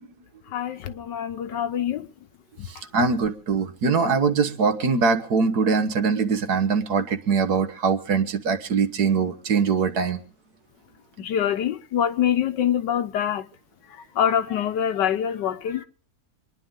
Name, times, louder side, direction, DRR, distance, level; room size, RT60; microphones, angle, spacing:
voice 1, 0.5-2.1 11.2-13.5 14.1-15.8, left 9 dB, 90° left, 1.6 m, -25 dB
voice 2, 2.9-10.2, right 5 dB, 65° right, 1.8 m, -22 dB
26.5 x 10.5 x 3.7 m
omnidirectional pair, 1.8 m